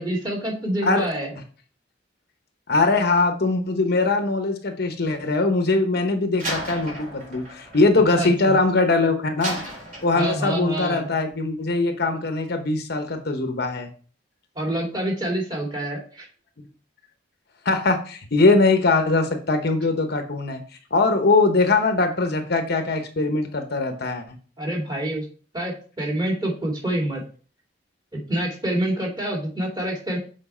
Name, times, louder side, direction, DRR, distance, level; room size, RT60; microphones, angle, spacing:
voice 1, 0.0-1.3 8.1-8.6 10.1-11.1 14.5-16.3 24.6-25.3 25.5-27.2 28.3-30.2, right 1 dB, 20° right, -2 dB, 2.6 m, -27 dB
voice 2, 2.7-9.6 10.0-13.9 17.6-20.6 20.9-24.2, left 3 dB, 55° left, 6 dB, 0.9 m, -21 dB
Slam, 6.4-8.8 9.4-10.6, right 1 dB, 45° right, 4.0 m, -35 dB
7.1 x 4.7 x 4.3 m, 0.40 s
head